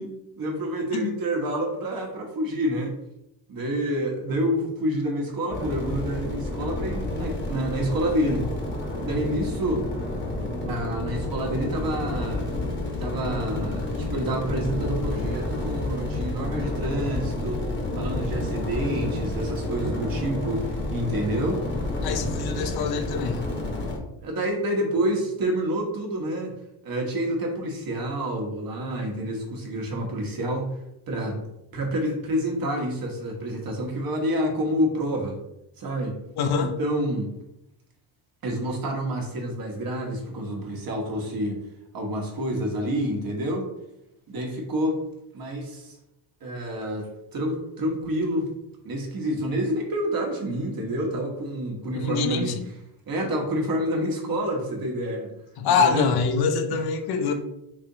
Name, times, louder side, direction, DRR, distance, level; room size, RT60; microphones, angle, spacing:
voice 1, 0.0-2.9 3.5-8.5 9.0-9.9 10.6-12.5 13.0-17.6 17.9-21.6 24.2-26.5 26.8-30.7 31.1-31.4 31.7-35.4 35.8-36.2 36.6-37.3 38.4-41.6 41.9-43.7 44.3-45.0 45.3-46.0 46.4-48.5 48.8-52.5 53.1-55.3 55.6-56.1 56.7-56.8 57.2-57.3, right 1 dB, 45° right, 1 dB, 1.1 m, -28 dB
sound 1, 5.5-24.0, left 2 dB, 25° left, 0.9 m, -30 dB
voice 2, 22.0-23.4 36.4-36.7 51.9-52.7 55.6-57.3, left 5 dB, 55° left, 7 dB, 0.6 m, -25 dB
3.3 x 2.9 x 3.8 m, 0.85 s
cardioid pair, 120°, 47 cm